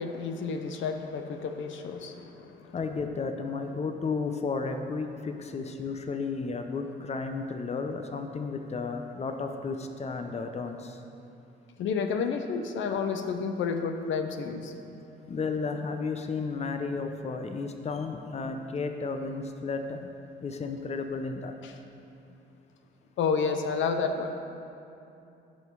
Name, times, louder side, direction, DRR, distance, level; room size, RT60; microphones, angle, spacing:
voice 1, 0.0-2.7 11.8-14.7 23.2-24.4, left 5 dB, 75° left, 6 dB, 0.8 m, -30 dB
voice 2, 2.7-11.0 15.3-20.1 20.4-21.6, left 4 dB, 35° left, 6 dB, 0.8 m, -33 dB
16.5 x 5.5 x 4.7 m, 2.7 s
cardioid pair, 90°, 20 cm